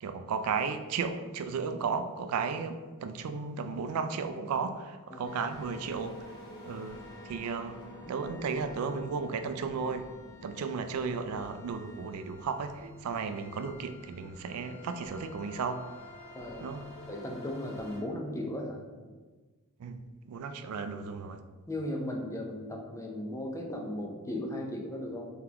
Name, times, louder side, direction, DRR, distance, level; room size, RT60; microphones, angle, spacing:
voice 1, 0.0-6.2 6.6-7.8 8.1-10.1 10.4-15.9 16.6-16.9 19.8-20.0 20.3-21.4, right 5 dB, 75° right, 9 dB, 0.3 m, -34 dB
sound 1, 5.2-18.0, left 1 dB, 50° left, 1.1 m, -49 dB
voice 2, 16.3-16.7 17.1-18.9 21.7-25.3, left 1 dB, 15° left, 1 dB, 0.5 m, -36 dB
3.8 x 3.5 x 2.8 m, 1.3 s
head